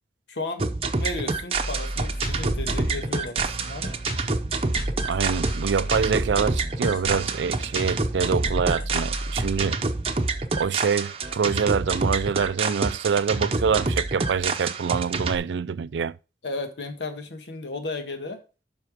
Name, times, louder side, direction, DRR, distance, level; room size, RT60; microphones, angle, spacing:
voice 1, 0.3-3.9 16.4-18.4, left 2 dB, 90° left, 1.5 m, -34 dB
sound 1, 0.6-15.4, right 3 dB, 30° right, 0.7 m, -27 dB
sound 2, 1.5-9.6, equal, 55° left, 1.8 m, -33 dB
voice 2, 5.0-9.8 10.6-16.2, right 6 dB, 90° right, 0.4 m, -25 dB
7.8 x 5.8 x 4.9 m
head